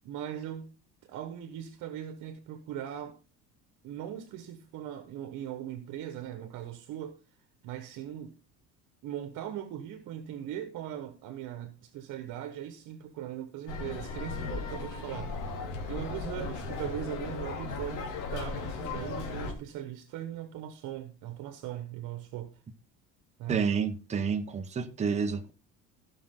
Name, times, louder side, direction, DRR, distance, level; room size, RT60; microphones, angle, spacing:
voice 1, 0.0-0.7 1.1-3.2 3.8-7.2 7.6-8.3 9.0-15.3 15.9-22.5 23.4-23.7, right 11 dB, 65° right, 1.4 m, -39 dB
sound 1, 13.7-19.5, left 4 dB, 65° left, 2.8 m, -36 dB
voice 2, 23.5-25.5, right 6 dB, 20° right, 1.0 m, -29 dB
16.5 x 6.0 x 3.8 m
cardioid pair, 150°, 34 cm